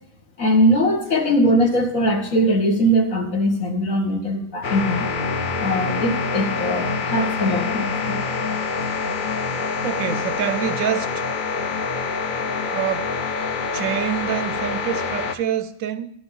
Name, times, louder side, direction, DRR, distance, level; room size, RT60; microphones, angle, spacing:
voice 1, 0.4-5.1 5.6-8.2, equal, 80° left, 1 dB, 2.1 m, -20 dB
sound 1, 4.6-15.3, left 4 dB, 45° left, 0.8 m, -26 dB
voice 2, 9.8-11.2 12.7-13.1 13.7-16.1, right 10 dB, 90° right, 11 dB, 1.1 m, -26 dB
12.0 x 6.2 x 6.7 m, 0.79 s
omnidirectional pair, 1.4 m